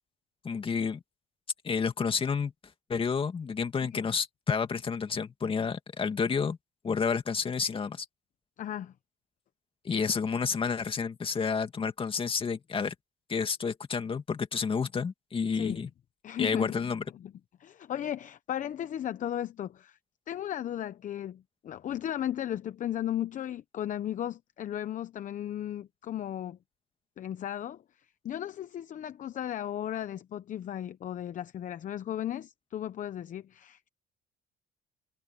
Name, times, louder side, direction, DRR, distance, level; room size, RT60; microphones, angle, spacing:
voice 1, 0.4-1.0 1.6-2.5 2.9-6.6 6.8-8.1 9.8-12.9 13.3-15.9 16.4-17.0, left 5 dB, 30° left, 2.2 m, -30 dB
voice 2, 8.6-8.9 15.5-15.8 16.2-16.9 17.1-17.3 17.6-20.0 20.3-26.6 27.2-27.8 28.2-33.9, left 11 dB, 50° left, 0.9 m, -35 dB
cardioid pair, 110°, 17 cm